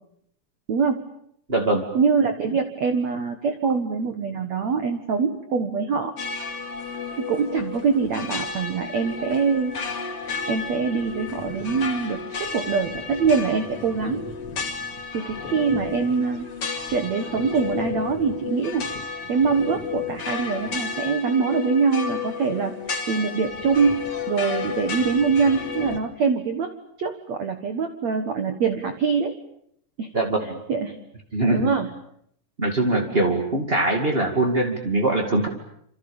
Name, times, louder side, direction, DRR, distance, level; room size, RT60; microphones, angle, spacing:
voice 1, 0.7-1.1 1.9-6.1 7.2-9.7 10.5-14.2 15.1-16.5 16.9-18.9 19.3-22.7 23.1-26.7 27.0-29.3 30.0-30.1 30.7-31.0 31.5-31.9, right 5 dB, 65° right, 7 dB, 1.7 m, -24 dB
voice 2, 1.5-1.9 30.1-30.6 31.3-31.7 32.6-35.5, right 2 dB, 35° right, 3 dB, 0.9 m, -22 dB
sound 1, 6.2-26.0, left 5 dB, 35° left, 2.6 m, -32 dB
28.5 x 27.0 x 7.2 m, 0.71 s
omnidirectional pair, 5.6 m